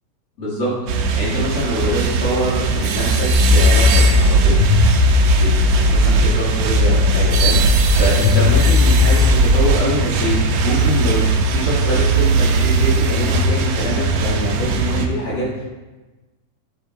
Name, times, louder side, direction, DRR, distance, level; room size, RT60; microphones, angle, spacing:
voice 1, 0.4-0.8 1.1-4.7 5.4-7.6 7.9-15.6, equal, 50° left, -11 dB, 2.8 m, -24 dB
sound 1, 0.9-15.1, right 4 dB, 80° right, 1.9 m, -19 dB
sound 2, 3.3-6.3 6.7-9.8, left 3 dB, 80° left, 2.1 m, -15 dB
7.3 x 3.6 x 4.1 m, 1.1 s
omnidirectional pair, 4.1 m